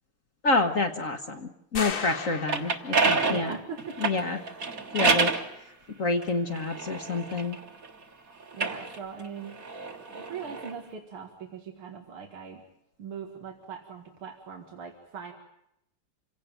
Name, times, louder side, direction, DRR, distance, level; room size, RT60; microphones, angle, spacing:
voice 1, 0.4-3.5 4.0-4.4 4.9-5.3 6.0-7.6, left 3 dB, 45° left, 5 dB, 1.4 m, -28 dB
sound 1, 1.8-3.2, left 5 dB, 65° left, 2.6 m, -35 dB
sound 2, 2.2-5.5 6.2-7.9 8.4-10.7, right 4 dB, 45° right, 2.1 m, -28 dB
voice 2, 3.2-4.0 8.5-9.6 10.0-12.6 13.0-15.3, right 6 dB, 85° right, 3 dB, 2.8 m, -40 dB
27.0 x 17.5 x 9.0 m, 0.81 s
omnidirectional pair, 2.3 m